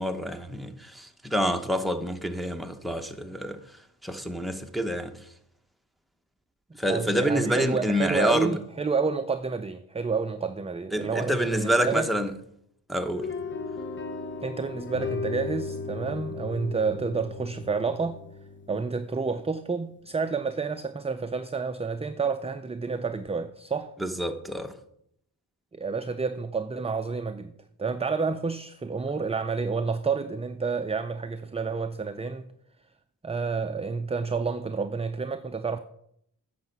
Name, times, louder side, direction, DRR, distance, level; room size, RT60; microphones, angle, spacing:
voice 1, 0.0-3.6 4.0-5.1 6.8-8.6 10.9-12.3 12.9-13.3 24.0-24.8, equal, ahead, 0.8 m, -27 dB
voice 2, 6.8-12.1 14.4-18.2 18.7-23.9 25.7-27.5 27.8-32.5 33.2-35.8, right 5 dB, 15° right, 0.4 m, -29 dB
sound 1, 13.1-19.4, left 4 dB, 30° left, 1.0 m, -36 dB
9.5 x 6.7 x 6.0 m
wide cardioid pair, 110°, 40 cm